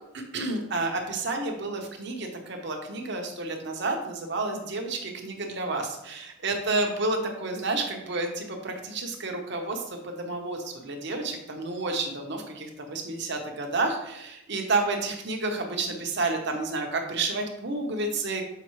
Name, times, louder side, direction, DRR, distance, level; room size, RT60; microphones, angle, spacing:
voice 1, 0.1-18.4, right 3 dB, 55° right, 3 dB, 1.0 m, -30 dB
6.8 x 5.2 x 3.1 m, 0.85 s
head